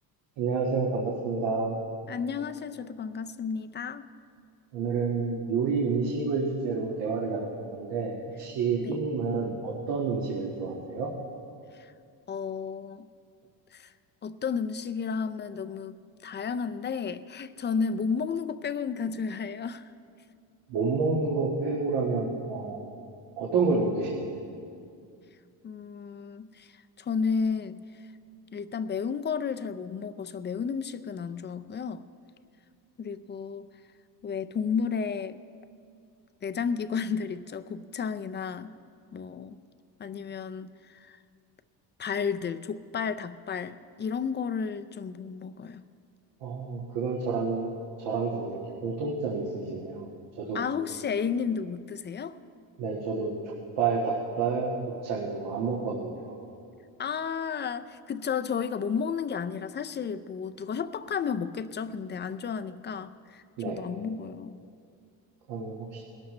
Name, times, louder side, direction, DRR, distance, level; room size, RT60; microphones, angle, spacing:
voice 1, 0.4-1.8 4.7-11.1 20.7-22.8 23.4-24.4 46.4-47.7 48.0-50.1 50.4-50.6 52.8-53.3 53.8-56.3 63.6-63.8 65.5-66.0, right 4 dB, 85° right, -2 dB, 1.8 m, -29 dB
voice 2, 2.1-4.1 8.8-9.0 11.7-11.9 12.3-13.1 13.7-13.9 14.2-19.8 25.6-26.7 27.0-27.8 28.5-32.0 33.0-33.7 34.2-35.4 36.4-38.7 39.1-39.6 40.0-41.2 42.0-45.8 50.5-52.4 57.0-64.6, left 6 dB, 25° left, 11 dB, 0.4 m, -32 dB
21.0 x 12.5 x 3.2 m, 2.3 s
cardioid pair, 120°, 42 cm